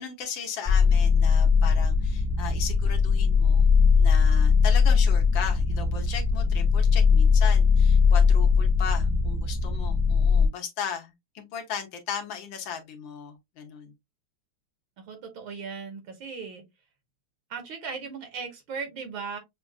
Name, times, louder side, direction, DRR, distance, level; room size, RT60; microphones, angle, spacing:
voice 1, 0.0-3.7 4.0-13.9, left 7 dB, 70° left, 1.5 m, -37 dB
sound 1, 0.7-10.5, left 5 dB, 5° left, 0.9 m, -20 dB
voice 2, 15.0-16.6 17.5-19.4, right 5 dB, 70° right, 1.9 m, -37 dB
6.2 x 2.4 x 2.3 m
omnidirectional pair, 2.3 m